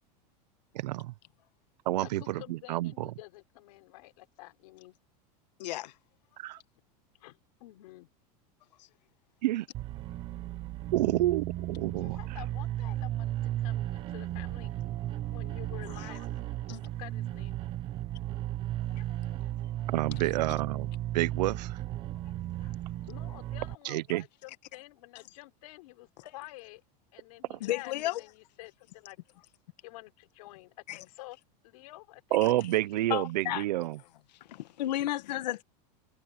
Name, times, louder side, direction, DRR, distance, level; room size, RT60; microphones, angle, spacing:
voice 1, 0.7-1.1 1.9-3.1 6.4-6.6 9.4-9.7 10.9-12.2 19.9-21.8 23.8-24.2 27.5-27.6 32.3-34.0, right 16 dB, 90° right, 0.8 m, -29 dB
voice 2, 2.0-5.0 7.2-8.1 12.0-14.7 15.3-16.3 16.9-17.6 23.1-26.8 27.1-29.2 29.8-31.4 31.6-32.2, left 20 dB, 60° left, 4.3 m, -49 dB
voice 3, 5.6-5.9 16.7-16.8 22.6-22.7 27.6-28.2 30.9-31.0 33.1-33.6 34.5-35.6, left 14 dB, 85° left, 1.6 m, -32 dB
sound 1, 9.7-23.8, right 13 dB, 25° right, 1.0 m, -35 dB
supercardioid pair, 175°, 21 cm